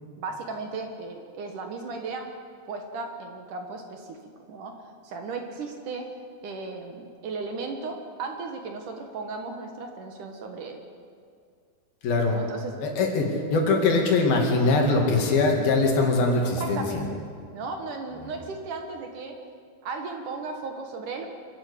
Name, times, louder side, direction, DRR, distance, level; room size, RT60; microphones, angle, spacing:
voice 1, 0.2-2.3 2.7-4.2 4.5-4.7 5.0-6.1 6.4-10.8 12.3-12.7 16.6-17.2 17.5-19.4 19.8-21.3, right 4 dB, 60° right, 4 dB, 2.6 m, -35 dB
voice 2, 12.0-12.4 12.8-17.1, left 3 dB, 70° left, 1 dB, 4.1 m, -22 dB
25.5 x 12.0 x 8.4 m, 2.2 s
omnidirectional pair, 4.5 m